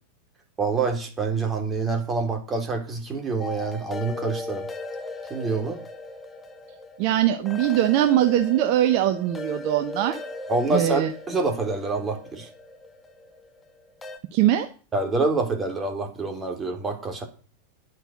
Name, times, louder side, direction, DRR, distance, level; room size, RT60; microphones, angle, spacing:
voice 1, 0.6-4.7 5.3-5.8 10.5-12.5 14.9-17.3, right 3 dB, 20° right, 4 dB, 3.2 m, -26 dB
sound 1, 3.4-14.2, left 2 dB, 15° left, 1.8 m, -37 dB
voice 2, 7.0-10.2 10.7-11.1 14.3-14.7, right 12 dB, 45° right, 9 dB, 0.9 m, -21 dB
10.5 x 8.0 x 6.5 m, 0.39 s
figure-of-eight pair, 90°, 0 cm